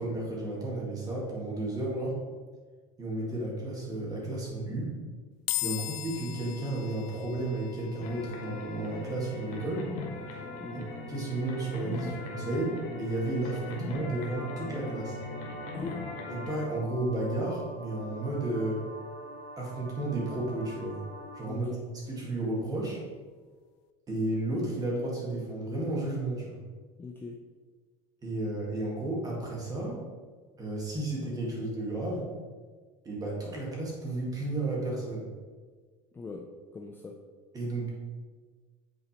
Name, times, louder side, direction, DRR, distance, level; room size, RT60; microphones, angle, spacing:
voice 1, 0.0-2.2 3.0-4.9 5.6-9.9 10.7-10.8 11.1-15.2 16.3-18.8 19.6-21.0 21.3-21.7 22.1-23.0 24.1-26.6 28.2-30.0 30.6-32.3 33.1-35.3 37.5-37.9, right 2 dB, 20° right, -3 dB, 2.0 m, -32 dB
sound 1, 5.5-18.8, left 18 dB, 70° left, 0.5 m, -43 dB
sound 2, 8.0-16.7, left 3 dB, 45° left, 1.2 m, -39 dB
sound 3, 14.3-21.4, equal, 60° right, 1.2 m, -46 dB
voice 2, 21.4-21.9 27.0-27.4 36.1-36.5 36.7-37.2, left 4 dB, 10° left, 2 dB, 0.4 m, -41 dB
8.6 x 4.0 x 4.4 m, 1.5 s
cardioid pair, 160°, 18 cm